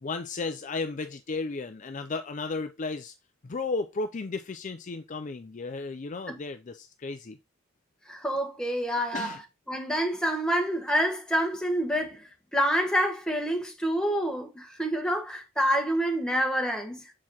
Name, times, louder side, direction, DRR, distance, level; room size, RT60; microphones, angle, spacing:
voice 1, 0.0-3.1 3.4-7.4 9.1-9.4, left 3 dB, 35° left, 0.4 m, -34 dB
voice 2, 8.0-9.4 9.7-17.1, equal, 5° left, 1.3 m, -27 dB
7.1 x 4.7 x 2.9 m
head